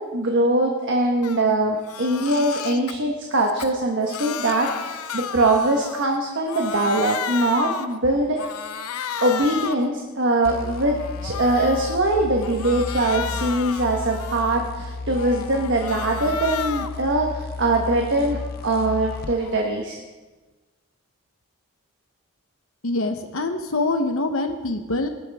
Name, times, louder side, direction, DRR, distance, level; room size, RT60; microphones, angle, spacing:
voice 1, 0.0-8.5 9.2-20.0, right 2 dB, 55° right, 1 dB, 1.3 m, -22 dB
Crying sobbing, 1.2-1.4 1.8-2.9 3.4-6.2 6.4-8.0 8.4-9.9 10.3-12.0 12.4-14.7 15.1-17.0 17.4-19.8, left 7 dB, 85° left, 0.7 m, -34 dB
sound 1, 10.4-19.4, left 3 dB, 45° left, 0.6 m, -34 dB
voice 2, 22.8-25.1, left 2 dB, 65° left, 6 dB, 1.0 m, -24 dB
20.0 x 11.5 x 3.6 m, 1.3 s
head